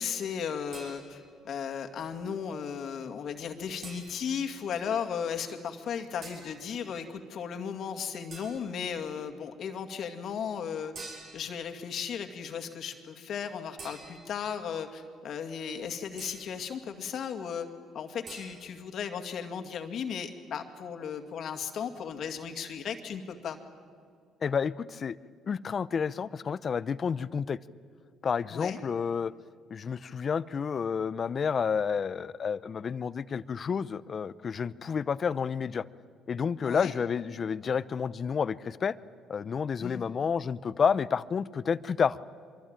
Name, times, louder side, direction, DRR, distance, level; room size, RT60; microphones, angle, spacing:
voice 1, 0.0-10.9 11.3-17.7 17.9-23.6 28.5-28.8 36.6-36.9 39.8-40.0, left 7 dB, 60° left, 6 dB, 2.2 m, -36 dB
sound 1, 0.7-1.4 3.8-4.5 6.2-6.6 8.3-8.9 11.0-11.6 13.8-14.5 16.2-16.7 18.3-18.6, right 3 dB, 60° right, 7.0 m, -47 dB
voice 2, 24.4-25.2 25.5-27.6 28.2-29.3 29.7-35.8 36.3-39.0 39.3-42.2, left 6 dB, 45° left, 18 dB, 0.7 m, -30 dB
24.5 x 23.0 x 9.0 m, 2.2 s
supercardioid pair, 85°, 0 cm